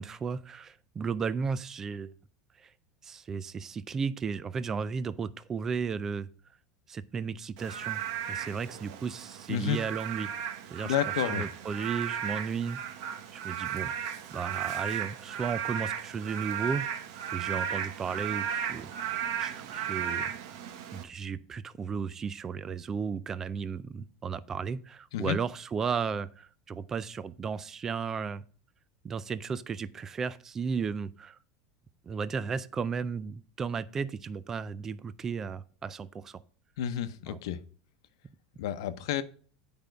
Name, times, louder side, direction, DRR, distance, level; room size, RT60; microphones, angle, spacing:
voice 1, 0.0-2.1 2.6-2.7 3.0-6.3 6.9-8.0 8.3-10.3 10.7-10.9 11.3-13.0 13.3-13.9 14.3-16.9 17.3-20.6 20.9-28.4 29.0-31.4 32.0-36.4 37.3-37.4, right 6 dB, 15° right, 0.3 m, -34 dB
Frog / Rain, 7.6-21.0, right 9 dB, 60° right, 1.0 m, -35 dB
voice 2, 9.5-9.8 10.8-11.5 25.1-25.4 36.8-37.6 38.6-39.2, left 10 dB, 75° left, 0.8 m, -30 dB
9.0 x 5.1 x 4.6 m
supercardioid pair, 170°, 3 cm